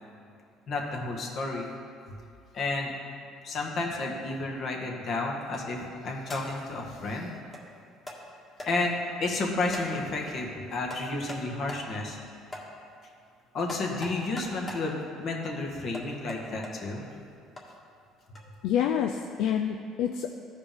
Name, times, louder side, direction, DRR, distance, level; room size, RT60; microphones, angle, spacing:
voice 1, 0.7-1.7 2.5-2.9 3.4-7.3 8.6-12.2 13.5-17.1, left 2 dB, 55° left, 0 dB, 1.5 m, -31 dB
sound 1, 5.4-5.7 6.3-6.7 7.5-7.6 8.1-8.2 8.6-8.7 9.7-10.0 10.9-11.4 11.7-11.9 12.5-12.7 13.7-14.9 15.9-16.7 17.6-17.7 18.4-18.5, left 1 dB, 25° left, 1.8 m, -41 dB
voice 2, 18.6-20.3, left 9 dB, 75° left, 4 dB, 0.4 m, -27 dB
14.5 x 5.0 x 3.6 m, 2.4 s
supercardioid pair, 90°, 0 cm